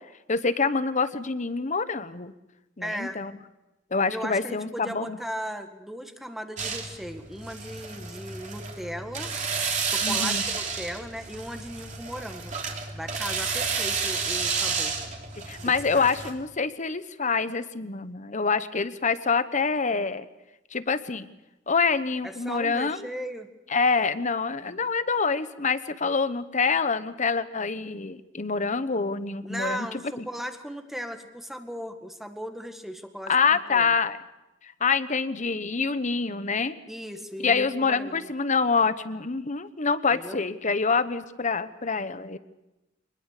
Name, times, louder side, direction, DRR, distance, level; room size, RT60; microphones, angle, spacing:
voice 1, 0.3-2.3 2.8-3.3 3.9-5.2 10.0-10.4 15.5-20.3 20.7-21.3 21.7-23.1 23.7-29.9 30.2-30.3 33.3-34.2 34.6-36.8 37.4-42.4, left 4 dB, 40° left, 13 dB, 1.1 m, -26 dB
voice 2, 2.8-3.2 4.1-9.3 9.8-12.5 12.9-14.9 16.0-16.1 22.2-23.5 29.4-33.9 36.9-38.3 40.1-40.4, equal, ahead, 6 dB, 1.8 m, -37 dB
sound 1, 6.6-16.3, right 5 dB, 40° right, 3.4 m, -31 dB
24.5 x 20.5 x 6.7 m, 0.98 s
head